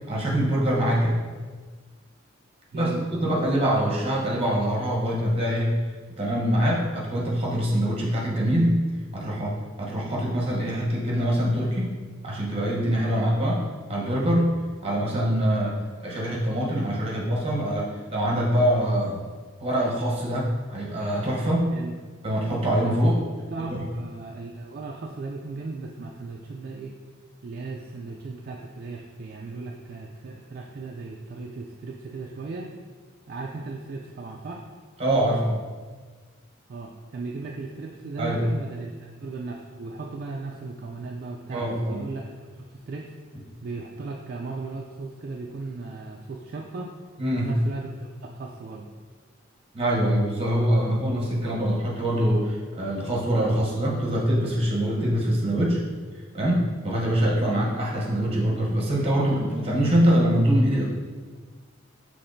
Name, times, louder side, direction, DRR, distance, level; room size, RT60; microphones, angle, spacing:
voice 1, 0.1-1.2 2.7-5.8 6.1-8.8 9.1-11.9 12.2-14.5 14.8-15.8 16.0-19.2 19.6-21.7 22.2-23.2 23.7-23.8 35.0-35.6 38.2-38.4 41.5-42.0 47.2-47.5 49.7-55.8 56.3-60.8, equal, 30° right, -4 dB, 1.0 m, -24 dB
voice 2, 2.7-3.5 21.7-21.9 23.5-27.0 27.4-32.7 33.3-34.6 36.7-38.9 39.2-43.1 43.6-47.0 47.3-48.9, right 3 dB, 50° right, 0 dB, 0.3 m, -36 dB
6.0 x 3.2 x 2.6 m, 1.5 s
head